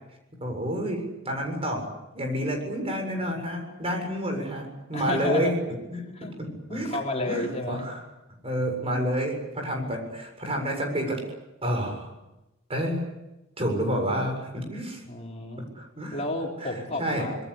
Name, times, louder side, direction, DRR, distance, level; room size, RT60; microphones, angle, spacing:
voice 1, 0.4-1.8 2.1-5.5 5.9-7.0 7.3-8.0 8.4-11.2 11.6-12.1 12.7-13.1 13.6-15.0 15.6-16.2 16.6-17.3, equal, 30° right, 3 dB, 7.3 m, -29 dB
voice 2, 4.9-5.6 6.2-6.3 6.7-7.9 8.8-8.9 15.1-15.6 16.1-17.4, left 2 dB, 35° left, 0 dB, 4.0 m, -31 dB
26.5 x 21.5 x 8.5 m, 0.99 s
head